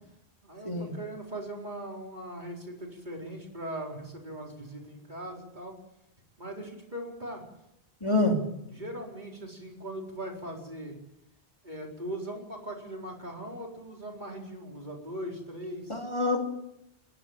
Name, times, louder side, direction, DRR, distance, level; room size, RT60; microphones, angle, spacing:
voice 1, 0.4-5.7 6.4-7.4 8.7-11.0 11.6-16.1, right 1 dB, 45° right, -1 dB, 4.6 m, -40 dB
voice 2, 8.0-8.4 15.9-16.4, left 2 dB, 30° left, 1 dB, 3.3 m, -26 dB
29.5 x 11.0 x 8.9 m, 0.83 s
omnidirectional pair, 1.1 m